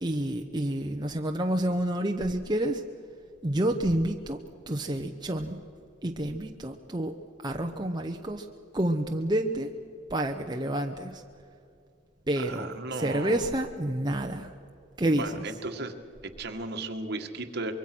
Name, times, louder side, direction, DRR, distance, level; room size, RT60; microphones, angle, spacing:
voice 1, 0.0-2.8 3.4-4.4 4.7-5.6 6.0-7.1 7.4-8.5 8.7-9.7 10.1-11.2 12.3-14.5 15.0-15.4, right 1 dB, 20° right, 3 dB, 1.0 m, -29 dB
voice 2, 12.4-13.5 15.1-15.9 16.2-17.7, right 2 dB, 55° right, 5 dB, 1.9 m, -35 dB
25.0 x 23.0 x 6.2 m, 2.4 s
head